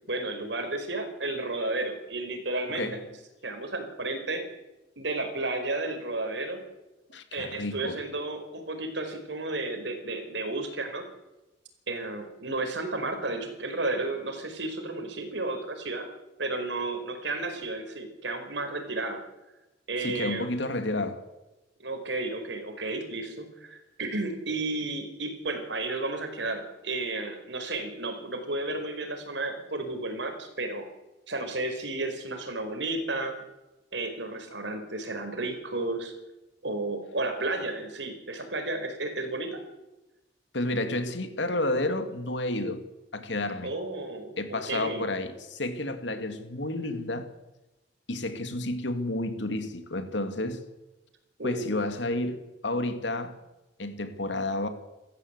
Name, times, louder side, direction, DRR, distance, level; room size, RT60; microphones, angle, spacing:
voice 1, 0.1-2.9 3.4-4.4 5.0-6.6 7.3-11.0 11.9-16.1 16.4-19.2 19.9-20.5 21.8-30.9 31.3-33.3 33.9-36.1 36.6-39.6 43.6-44.4 44.7-45.0 51.4-51.6, right 2 dB, 75° right, 4.8 m, -32 dB
voice 2, 2.7-3.0 7.1-8.0 20.0-21.2 40.5-42.8 43.1-43.7 44.4-47.3 48.1-50.6 51.4-53.4 53.8-54.7, left 2 dB, 80° left, 2.6 m, -31 dB
28.5 x 14.5 x 8.3 m
head